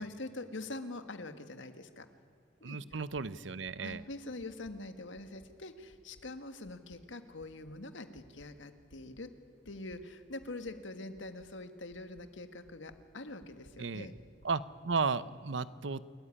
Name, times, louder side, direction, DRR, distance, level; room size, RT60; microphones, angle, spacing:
voice 1, 0.0-2.1 2.6-3.0 3.8-9.3 9.6-14.1, left 2 dB, 80° left, 9 dB, 1.7 m, -44 dB
voice 2, 2.6-4.0 13.8-14.1 14.4-16.0, right 4 dB, 75° right, 17 dB, 0.7 m, -34 dB
sound 1, 2.9-3.2 3.6-4.0 4.4-4.7 5.1-5.5 5.9-6.2 6.6-7.0 7.4-7.7 8.1-8.5 8.9-9.2 9.6-10.0 10.4-10.7 11.1-11.5 11.9-12.2 12.6-13.0 13.4-13.7 14.1-14.5 14.9-15.0, right 1 dB, 90° right, 2.0 m, -61 dB
28.5 x 14.5 x 9.9 m, 2.2 s
head